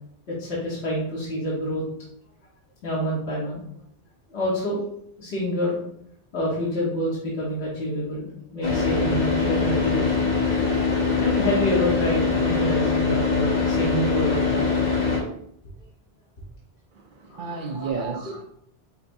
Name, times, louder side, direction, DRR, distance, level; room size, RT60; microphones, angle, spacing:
voice 1, 0.3-1.8 2.8-3.6 4.3-4.8 5.2-5.8 6.3-10.3 11.2-14.6 17.3-17.9 18.3-18.4, equal, 80° left, 1.5 m, -27 dB
Car / Idling, 8.6-15.2, left 4 dB, 40° left, 1.4 m, -23 dB
voice 2, 16.9-18.4, right 4 dB, 55° right, 0.7 m, -32 dB
5.7 x 3.4 x 2.6 m
omnidirectional pair, 1.1 m